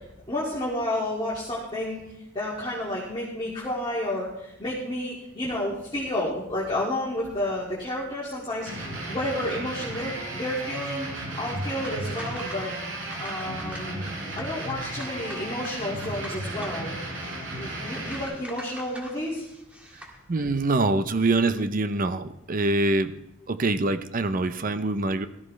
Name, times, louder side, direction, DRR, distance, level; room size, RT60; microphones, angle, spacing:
voice 1, 0.0-2.0 2.3-12.7 13.2-14.0 14.4-16.9 17.5-19.4, left 1 dB, 25° left, -6 dB, 2.3 m, -31 dB
sound 1, 8.7-18.3, right 1 dB, 85° right, 4.5 m, -34 dB
sound 2, 11.5-20.2, equal, 5° right, 1.9 m, -46 dB
voice 2, 20.3-23.2 23.5-25.3, right 2 dB, 45° right, 11 dB, 0.6 m, -24 dB
17.5 x 13.5 x 3.2 m, 0.90 s
head